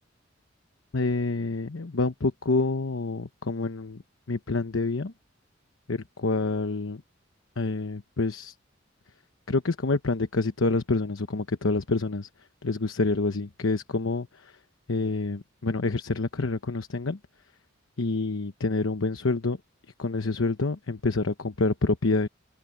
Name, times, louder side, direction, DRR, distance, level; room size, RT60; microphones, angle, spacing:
voice 1, 0.9-4.0 4.3-5.1 5.9-7.0 7.6-8.5 9.5-12.3 12.6-14.3 14.9-17.2 18.0-19.6 20.0-22.3, left 3 dB, 80° left, 1.0 m, -27 dB
open air
head